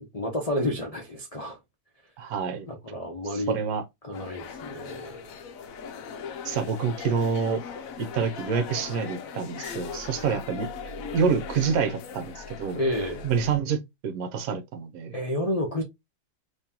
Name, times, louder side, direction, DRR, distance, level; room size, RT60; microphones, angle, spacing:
voice 1, 0.0-1.6 2.2-2.3 2.7-3.6 4.0-5.3 12.7-13.3 15.1-15.8, left 1 dB, 45° left, 0.4 m, -30 dB
voice 2, 2.2-2.7 3.3-3.8 6.4-7.6 8.0-10.7 11.1-12.8 13.2-15.1, right 6 dB, 60° right, 1.1 m, -27 dB
sound 1, 4.1-13.6, left 6 dB, 65° left, 0.8 m, -39 dB
3.7 x 3.0 x 2.8 m
omnidirectional pair, 1.9 m